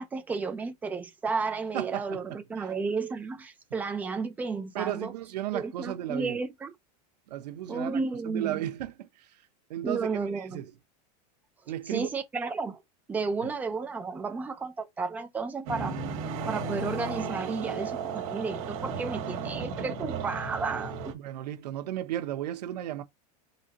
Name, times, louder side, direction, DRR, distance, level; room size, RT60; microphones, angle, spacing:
voice 1, 0.0-5.1 5.5-6.7 7.7-8.6 9.8-10.6 11.9-12.8 13.1-16.0 16.5-21.1, right 4 dB, 10° right, 0.4 m, -32 dB
voice 2, 1.7-2.7 4.7-6.4 7.3-9.3 9.7-10.1 10.3-10.7 11.7-12.1 13.4-13.5 21.1-23.0, right 13 dB, 85° right, 1.0 m, -34 dB
sound 1, 15.7-21.1, right 5 dB, 55° right, 2.0 m, -34 dB
4.1 x 3.9 x 2.8 m
supercardioid pair, 170°, 20 cm